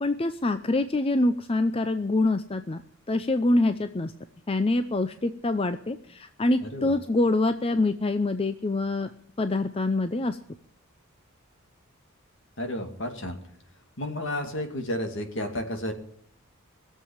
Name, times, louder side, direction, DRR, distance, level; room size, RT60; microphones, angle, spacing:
voice 1, 0.0-2.8 3.1-4.1 4.5-9.1 9.4-10.4, left 2 dB, 25° left, 9 dB, 0.5 m, -25 dB
voice 2, 12.6-13.4 14.0-15.9, left 1 dB, 60° left, 5 dB, 2.4 m, -31 dB
20.0 x 7.6 x 8.6 m, 0.65 s
head